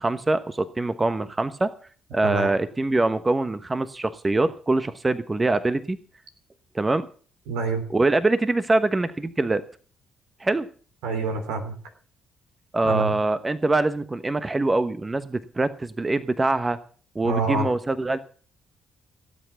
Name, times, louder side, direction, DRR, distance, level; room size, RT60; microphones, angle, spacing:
voice 1, 0.0-1.7 2.1-6.0 6.7-7.1 7.9-9.6 10.4-10.7 12.7-16.8 17.1-18.2, right 2 dB, 25° right, 12 dB, 1.1 m, -24 dB
voice 2, 2.2-2.5 7.5-7.8 11.0-11.7 12.8-13.1 17.2-17.7, right 3 dB, 80° right, 5 dB, 3.2 m, -26 dB
17.0 x 8.2 x 7.1 m, 0.41 s
hypercardioid pair, 50°, 0 cm